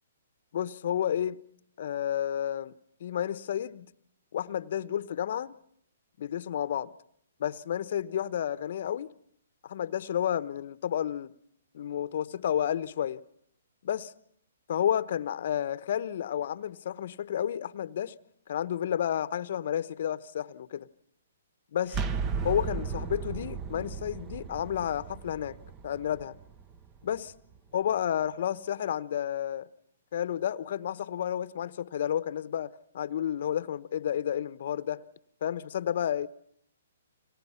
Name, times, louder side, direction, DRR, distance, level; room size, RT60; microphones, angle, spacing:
voice 1, 0.5-1.4 1.8-2.7 3.0-3.9 4.3-5.6 6.2-6.9 7.4-9.1 9.6-11.3 11.7-13.2 13.8-14.1 14.7-18.1 18.5-20.9 21.7-22.0 22.4-25.6 25.8-26.4 27.0-27.3 27.7-29.7 30.1-35.0 35.4-36.3, left 10 dB, 55° left, 1.0 m, -31 dB
sound 1, 21.9-27.6, right 5 dB, 25° right, 1.3 m, -36 dB
30.0 x 25.5 x 5.8 m
hypercardioid pair, 135°, 0 cm